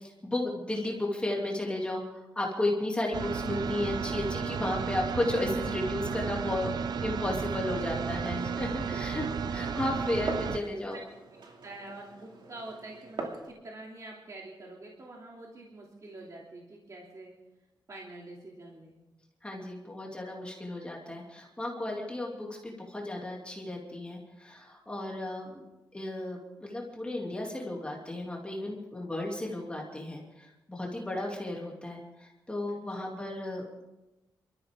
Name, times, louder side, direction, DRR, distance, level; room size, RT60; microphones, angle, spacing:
voice 1, 0.0-6.7 7.0-11.0 19.4-25.6 25.9-33.8, left 1 dB, 15° left, -2 dB, 2.9 m, -34 dB
sound 1, 3.1-10.6, right 6 dB, 60° right, 0.8 m, -33 dB
voice 2, 8.0-8.7 9.7-9.8 10.9-11.0 11.6-17.3 17.9-19.0 32.7-33.2, right 2 dB, 45° right, -3 dB, 3.0 m, -46 dB
Glass, 8.3-13.5, right 3 dB, 75° right, 2.8 m, -43 dB
27.5 x 14.0 x 3.8 m, 1.0 s
wide cardioid pair, 115°, 8 cm